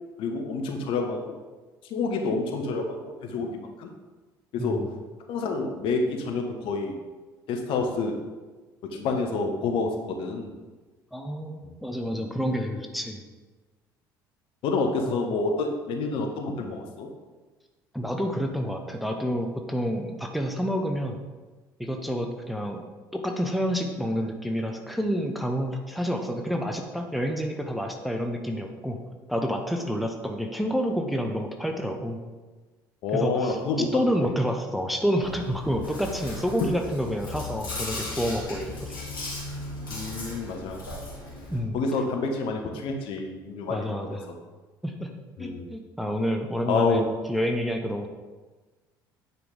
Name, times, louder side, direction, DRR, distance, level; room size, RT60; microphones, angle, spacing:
voice 1, 0.2-1.2 1.9-3.9 4.5-4.8 5.3-6.9 7.5-8.2 8.9-10.5 14.6-17.1 33.0-34.3 36.6-36.7 39.9-40.8 41.7-44.4 45.4-45.7 46.7-47.0, left 3 dB, 50° left, 3 dB, 1.1 m, -28 dB
voice 2, 4.6-5.0 11.1-13.2 15.1-15.2 17.9-21.2 21.8-22.8 23.1-29.0 29.3-32.2 33.1-38.9 41.5-41.8 43.7-44.3 44.8-45.1 45.4-48.1, equal, ahead, 3 dB, 0.9 m, -29 dB
Chewing mastication, 35.2-41.6, left 2 dB, 80° left, 2.4 m, -37 dB
9.3 x 5.0 x 3.9 m, 1.3 s
figure-of-eight pair, 60°, 11 cm